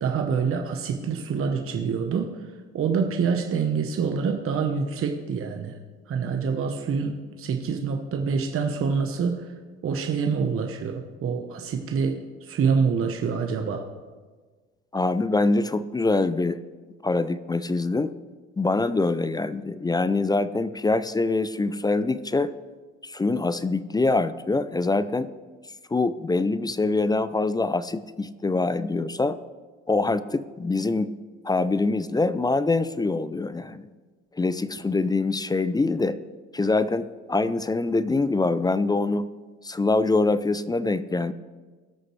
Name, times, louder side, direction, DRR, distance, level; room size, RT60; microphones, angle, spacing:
voice 1, 0.0-2.3 2.7-5.8 6.1-9.5 9.8-13.9, right 5 dB, 45° right, 3 dB, 1.0 m, -26 dB
voice 2, 14.9-16.6 17.0-18.1 18.6-22.5 23.0-25.3 25.9-29.4 29.9-31.1 31.4-33.9 34.3-36.2 36.5-39.3 39.6-41.3, left 3 dB, 15° left, 15 dB, 0.4 m, -24 dB
19.0 x 6.4 x 3.2 m, 1.4 s
supercardioid pair, 75°, 30 cm